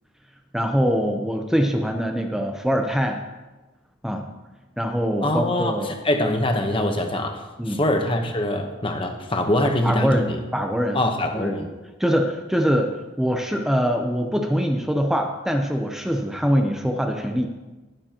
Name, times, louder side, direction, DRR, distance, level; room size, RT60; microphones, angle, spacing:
voice 1, 0.5-3.2 4.0-4.3 4.8-5.9 7.6-7.8 9.8-11.0 11.3-11.5 12.0-17.5, equal, ahead, 4 dB, 0.6 m, -23 dB
voice 2, 5.2-5.7 6.0-7.4 7.7-10.4 10.9-11.7, left 1 dB, 25° left, 4 dB, 1.0 m, -23 dB
20.0 x 7.2 x 3.0 m, 1.2 s
head